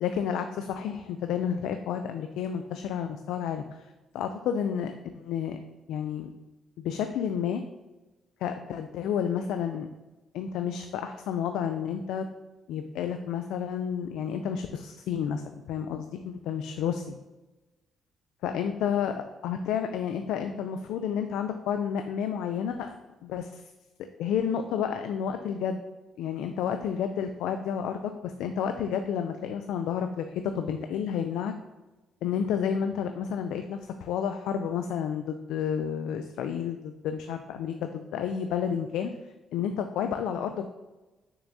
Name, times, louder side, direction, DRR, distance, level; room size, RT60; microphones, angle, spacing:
voice 1, 0.0-3.9 4.1-5.6 5.9-6.3 6.8-7.6 8.4-9.9 10.3-12.3 12.7-17.0 18.4-23.0 23.2-23.6 24.2-25.8 26.2-31.5 32.2-39.1 39.5-40.7, left 8 dB, 90° left, 7 dB, 0.3 m, -30 dB
6.6 x 5.8 x 2.7 m, 1.1 s
cardioid pair, 90°, 0 cm